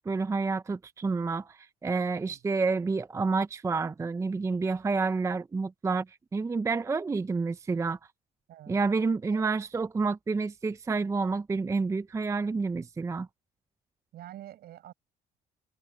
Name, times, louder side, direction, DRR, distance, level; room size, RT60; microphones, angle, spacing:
voice 1, 0.0-8.0 8.7-13.3, right 4 dB, 15° right, 0.5 m, -29 dB
voice 2, 8.5-8.8 9.2-9.5 14.1-14.9, right 13 dB, 70° right, 7.9 m, -46 dB
cardioid pair, 110°, 17 cm